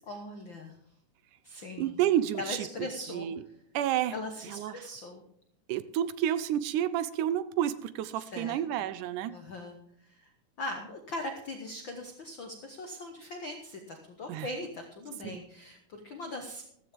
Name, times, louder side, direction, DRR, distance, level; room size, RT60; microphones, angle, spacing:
voice 1, 0.1-0.8 1.4-1.9 2.4-3.5 4.1-5.2 8.2-8.8 9.3-10.3 10.6-16.7, left 2 dB, 70° left, 3 dB, 1.1 m, -40 dB
voice 2, 1.8-2.7 3.1-3.4 3.7-4.1 4.5-4.7 5.7-9.3 14.3-14.5 15.2-15.4, right 11 dB, 80° right, 14 dB, 2.0 m, -30 dB
14.5 x 13.5 x 3.5 m, 0.74 s
omnidirectional pair, 3.8 m